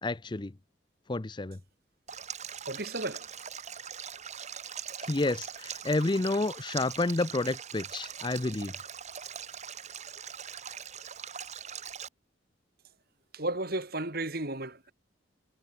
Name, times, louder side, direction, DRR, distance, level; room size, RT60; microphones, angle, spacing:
voice 1, 0.0-0.5 1.1-1.6 5.1-8.7, left 2 dB, 25° left, 0.6 m, -30 dB
Stream, 2.1-12.1, right 8 dB, 40° right, 2.3 m, -42 dB
voice 2, 2.7-3.3 13.3-14.9, right 2 dB, 55° right, 4.9 m, -34 dB
head